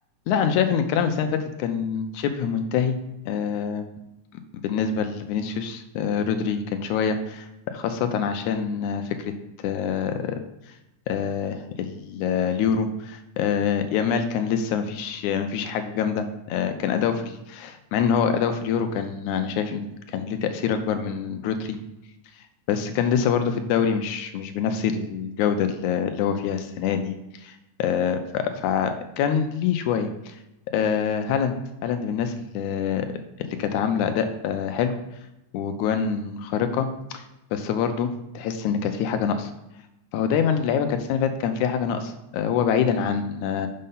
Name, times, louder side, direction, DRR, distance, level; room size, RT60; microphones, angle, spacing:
voice 1, 0.3-2.9 3.3-3.9 4.6-7.5 7.7-10.4 11.1-21.8 22.7-27.1 27.4-30.3 30.7-31.5 31.8-33.1 33.4-35.0 35.5-37.2 37.5-39.5 40.1-43.7, left 7 dB, 80° left, 8 dB, 2.0 m, -25 dB
6.5 x 5.5 x 5.5 m, 0.91 s
omnidirectional pair, 3.6 m